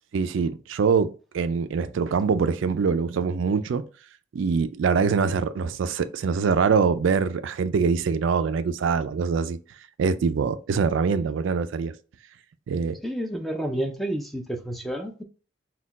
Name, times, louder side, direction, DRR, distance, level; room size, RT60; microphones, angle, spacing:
voice 1, 0.1-3.8 4.3-9.6 10.0-11.9 12.7-13.0, right 5 dB, 75° right, 0.3 m, -24 dB
voice 2, 13.0-15.2, right 1 dB, ahead, 0.4 m, -30 dB
4.2 x 2.3 x 3.9 m
head